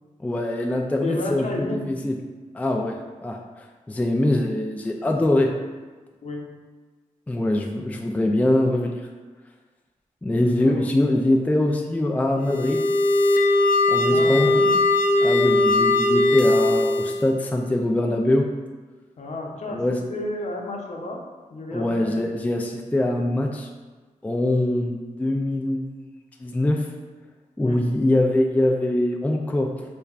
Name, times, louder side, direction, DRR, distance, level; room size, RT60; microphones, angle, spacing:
voice 1, 0.2-2.1 2.5-3.0 3.2-3.4 3.9-5.5 7.3-9.0 10.2-12.8 13.9-14.5 15.2-18.5 19.7-20.0 21.7-23.7 24.2-25.9 26.4-26.9 27.6-29.7, left 1 dB, 10° left, 2 dB, 0.4 m, -23 dB
voice 2, 1.0-1.9 6.2-6.5 10.4-10.8 14.1-14.7 19.2-21.2 21.5-22.3 27.6-27.8, left 2 dB, 55° left, 0 dB, 0.7 m, -32 dB
sound 1, 12.4-17.3, left 2 dB, 85° left, 0.4 m, -19 dB
6.5 x 2.2 x 2.4 m, 1.3 s
cardioid pair, 65°, 14 cm